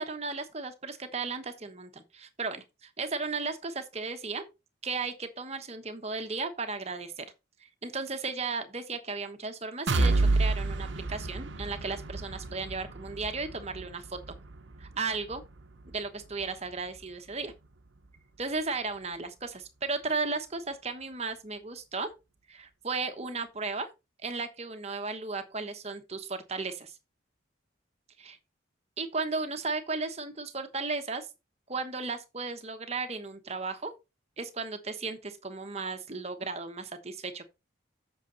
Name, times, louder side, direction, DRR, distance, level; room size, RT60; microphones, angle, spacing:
voice 1, 0.0-4.5 4.8-7.2 7.6-14.2 14.8-15.4 15.9-17.5 18.4-22.1 22.5-23.9 24.2-27.0 28.2-28.4 29.0-31.3 31.7-33.9 34.4-37.5, right 4 dB, 30° right, 1.1 m, -35 dB
sound 1, 9.9-17.7 18.1-18.2 18.6-18.7, right 2 dB, 70° right, 0.8 m, -31 dB
8.3 x 6.4 x 4.0 m
head